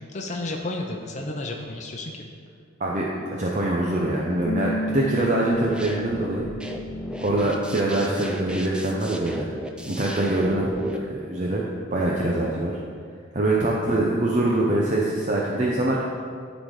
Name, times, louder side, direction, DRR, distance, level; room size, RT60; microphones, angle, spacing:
voice 1, 0.0-2.3 7.3-7.6 13.7-14.0, left 2 dB, 40° left, 1 dB, 0.7 m, -33 dB
voice 2, 2.8-6.5 7.2-9.5 9.9-11.6 11.9-12.7 13.3-16.0, right 1 dB, 40° right, -3 dB, 0.7 m, -24 dB
Bass guitar, 4.5-10.7, left 1 dB, 85° left, 0.6 m, -36 dB
sound 1, 5.5-11.0, equal, 5° right, 0.4 m, -35 dB
12.0 x 4.1 x 4.9 m, 2.1 s
head